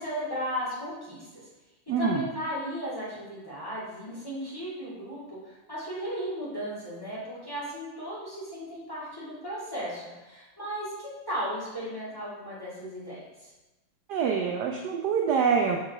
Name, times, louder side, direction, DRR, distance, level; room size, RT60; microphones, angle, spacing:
voice 1, 0.0-1.4 1.9-13.5, equal, 10° left, -9 dB, 2.0 m, -36 dB
voice 2, 1.9-2.2 14.1-15.8, right 6 dB, 75° right, 2 dB, 1.0 m, -25 dB
5.5 x 5.0 x 3.5 m, 1.1 s
omnidirectional pair, 2.2 m